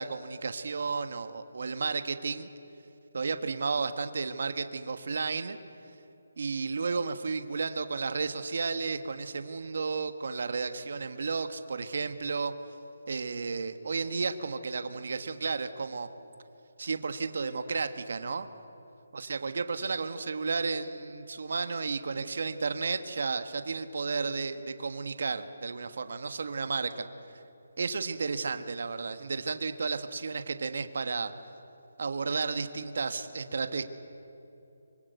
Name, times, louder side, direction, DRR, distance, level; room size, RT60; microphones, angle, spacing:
voice 1, 0.0-2.5 3.1-5.6 6.4-12.5 13.1-16.1 16.8-18.5 19.1-27.1 27.8-31.3 32.0-33.8, right 4 dB, 55° right, 9 dB, 1.4 m, -32 dB
24.5 x 23.5 x 8.2 m, 2.9 s
hypercardioid pair, 170°, 0 cm